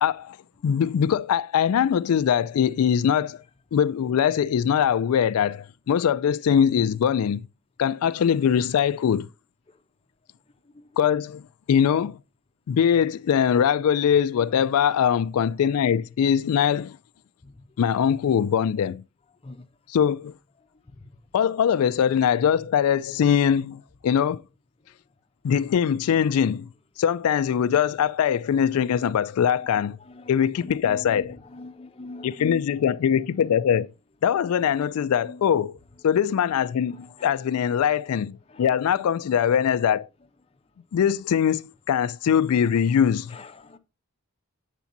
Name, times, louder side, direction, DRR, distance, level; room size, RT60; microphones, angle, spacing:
voice 1, 0.0-0.4 0.6-3.4 3.7-7.5 7.8-9.3 11.0-11.4 11.7-12.2 12.7-17.0 17.8-19.0 19.9-20.3 21.3-24.4 25.4-26.7 27.0-30.0 30.3-31.4 32.2-33.9 34.2-35.8 36.0-40.1 40.9-43.4, left 8 dB, 85° left, 0.3 m, -22 dB
voice 2, 30.6-32.6 35.2-35.4 38.5-38.6 43.3-43.8, left 2 dB, 25° left, 0.6 m, -42 dB
8.1 x 7.1 x 2.6 m
head